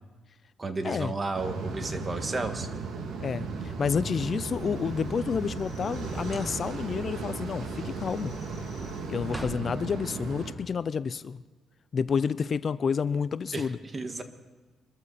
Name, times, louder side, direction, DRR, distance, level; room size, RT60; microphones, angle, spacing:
voice 1, 0.6-2.7 13.5-13.7 13.9-14.2, right 3 dB, 30° right, 7 dB, 1.7 m, -32 dB
sound 1, 1.3-10.5, right 4 dB, 70° right, 2.1 m, -36 dB
voice 2, 3.2-8.3 9.1-11.4 11.9-13.8, left 6 dB, 45° left, 16 dB, 0.5 m, -29 dB
sound 2, 4.2-5.0 6.2-6.8 7.2-9.7, right 1 dB, 10° right, 1.5 m, -46 dB
Cricket, 4.4-9.6, left 3 dB, 30° left, 4.8 m, -50 dB
25.0 x 13.5 x 4.2 m, 1.3 s
cardioid pair, 90°, 0 cm